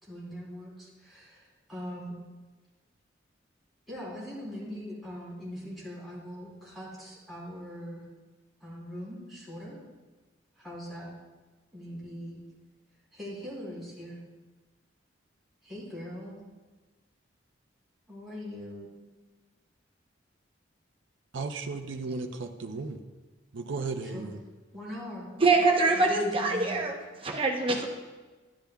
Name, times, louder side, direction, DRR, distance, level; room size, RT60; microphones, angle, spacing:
voice 1, 0.0-2.1 3.9-8.0 8.6-9.7 10.5-11.1 11.7-12.4 13.1-14.2 15.6-16.4 18.1-18.9 24.1-24.3 24.7-25.3 25.9-26.8, equal, ahead, -9 dB, 3.3 m, -41 dB
voice 2, 21.3-23.0 23.5-24.4, right 3 dB, 75° right, 6 dB, 0.6 m, -35 dB
voice 3, 25.4-27.0 27.2-27.8, right 3 dB, 30° right, 1 dB, 0.8 m, -24 dB
11.5 x 10.5 x 2.3 m, 1.3 s
head